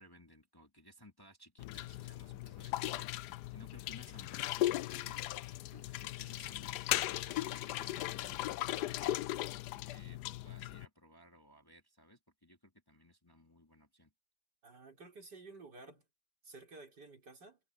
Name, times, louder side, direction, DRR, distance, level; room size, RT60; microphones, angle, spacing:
voice 1, 0.0-5.3 5.7-9.3 9.9-14.1, equal, 10° left, 2.7 m, -59 dB
sound 1, 1.6-10.9, left 15 dB, 70° left, 1.0 m, -38 dB
voice 2, 14.6-16.0 16.4-17.6, right 3 dB, 60° right, 5.1 m, -53 dB
omnidirectional pair, 2.1 m